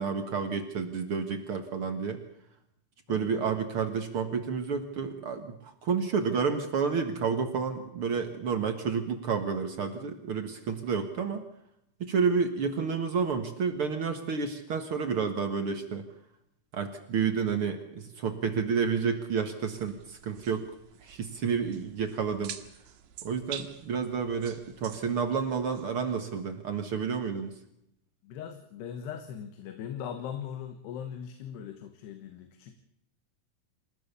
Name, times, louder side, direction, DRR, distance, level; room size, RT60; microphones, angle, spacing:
voice 1, 0.0-2.2 3.1-11.4 12.0-16.1 16.7-20.6 21.0-22.6 23.2-27.6, right 6 dB, 60° right, 6 dB, 1.4 m, -30 dB
voice 2, 3.1-3.6 28.2-32.8, left 8 dB, 75° left, 7 dB, 3.5 m, -40 dB
sound 1, 19.8-26.5, right 10 dB, 80° right, 3.6 m, -47 dB
28.0 x 15.5 x 6.9 m, 0.78 s
omnidirectional pair, 4.9 m